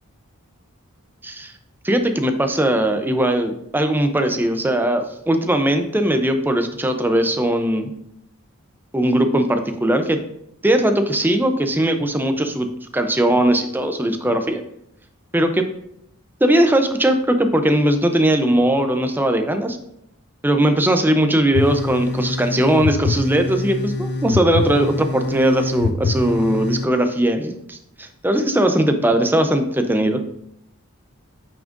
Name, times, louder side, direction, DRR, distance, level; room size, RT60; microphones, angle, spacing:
voice 1, 1.8-7.9 8.9-10.2 10.6-12.7 12.9-14.6 15.3-15.6 16.4-19.8 20.4-30.2, right 1 dB, 10° right, 6 dB, 0.5 m, -19 dB
sound 1, 21.5-26.9, left 3 dB, 50° left, 0.5 m, -25 dB
8.7 x 6.1 x 2.6 m, 0.76 s
head